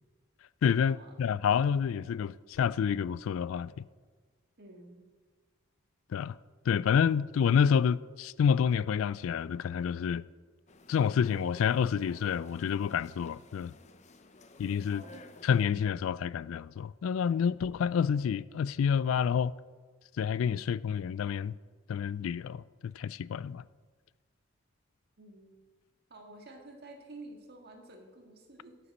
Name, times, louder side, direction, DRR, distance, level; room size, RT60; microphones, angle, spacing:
voice 1, 0.6-3.8 6.1-6.4 6.7-10.2 10.9-13.7 14.6-15.0 15.4-19.6 20.2-21.5 21.9-23.6, left 7 dB, 75° left, 0.3 m, -28 dB
voice 2, 4.6-5.0 15.0-15.3 25.2-25.6 26.1-28.8, right 2 dB, 50° right, 1.8 m, -50 dB
sound 1, 10.7-15.7, left 3 dB, 35° left, 0.6 m, -53 dB
12.5 x 7.0 x 5.3 m
head